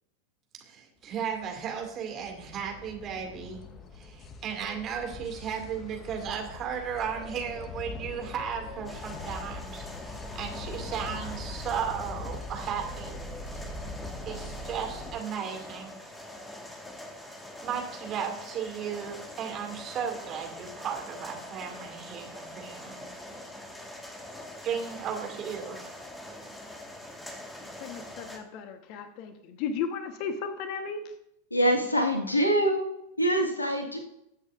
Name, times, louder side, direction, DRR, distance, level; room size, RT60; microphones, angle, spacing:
voice 1, 0.6-3.6 3.9-13.1 14.3-16.1 17.6-23.1 24.6-26.0, right 7 dB, 30° right, 3 dB, 2.2 m, -35 dB
sound 1, 1.2-15.2, left 2 dB, 25° left, 0.9 m, -41 dB
sound 2, 8.8-28.4, left 1 dB, 10° left, 1.6 m, -44 dB
voice 2, 27.6-31.0, left 6 dB, 45° left, 8 dB, 1.2 m, -35 dB
voice 3, 31.5-32.9 33.2-34.0, equal, 80° left, 3 dB, 1.7 m, -24 dB
20.0 x 8.2 x 2.5 m, 0.80 s
figure-of-eight pair, 90°, 0 cm